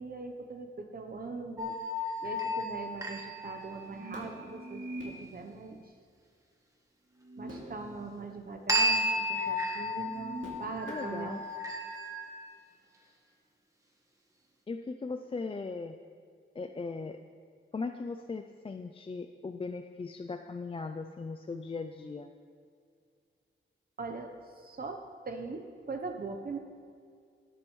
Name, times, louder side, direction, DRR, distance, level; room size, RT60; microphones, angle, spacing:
voice 1, 0.0-1.8 2.2-5.9 7.4-11.4 24.0-25.0 25.2-26.6, right 3 dB, 45° right, 4 dB, 0.8 m, -41 dB
sound 1, 1.6-4.4 8.7-12.3, left 1 dB, 15° right, 1.2 m, -33 dB
sound 2, 3.8-5.1 7.2-8.1 8.5-8.6 10.0-12.3, right 2 dB, 70° right, 2.5 m, -44 dB
voice 2, 10.9-11.4 14.7-16.0 16.6-17.2 17.7-22.3, left 4 dB, 25° left, 6 dB, 0.4 m, -38 dB
18.5 x 8.7 x 3.1 m, 2.2 s
wide cardioid pair, 175°, 21 cm